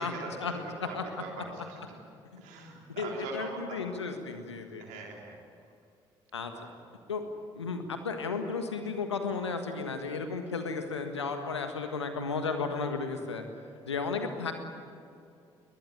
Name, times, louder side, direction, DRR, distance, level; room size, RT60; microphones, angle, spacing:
voice 1, 0.0-1.1 2.3-2.4 2.9-5.0 6.3-6.5 7.1-7.2 7.5-13.4 13.9-14.5, left 4 dB, 90° left, 6 dB, 1.6 m, -34 dB
voice 2, 0.8-1.8 2.4-3.8 4.8-5.4, right 3 dB, 70° right, 0 dB, 3.6 m, -41 dB
21.0 x 21.0 x 9.7 m, 2.4 s
figure-of-eight pair, 45°, 14 cm